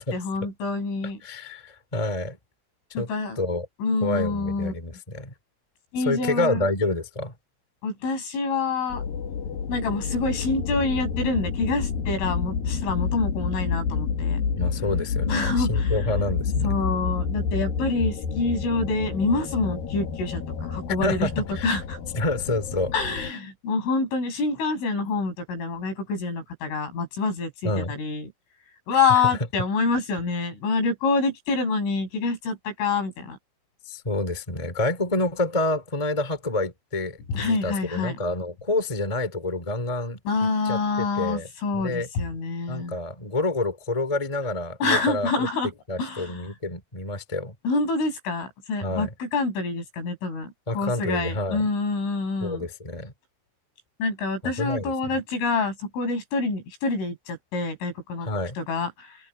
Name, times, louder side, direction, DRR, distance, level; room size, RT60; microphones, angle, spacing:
voice 1, 0.1-1.2 2.9-3.4 3.8-4.7 5.9-6.7 7.8-9.0 9.7-14.4 15.3-16.0 16.6-21.3 21.6-22.0 22.9-28.3 28.9-33.4 37.3-38.2 40.3-43.0 44.8-45.7 46.0-46.5 47.6-52.7 54.0-58.3 58.6-59.2, left 3 dB, 70° left, 9.8 m, -26 dB
voice 2, 1.2-2.4 2.9-3.1 3.4-3.7 4.0-5.3 6.0-7.3 14.6-16.8 21.0-21.7 22.1-22.9 27.6-27.9 29.1-29.2 33.8-41.5 41.7-42.1 42.7-45.5 45.9-47.5 48.8-49.1 50.7-51.7 52.4-53.1 54.4-55.1 58.2-58.6, left 2 dB, 10° left, 2.5 m, -28 dB
sound 1, 8.9-23.3, left 6 dB, 50° left, 3.6 m, -29 dB
open air
omnidirectional pair, 5.8 m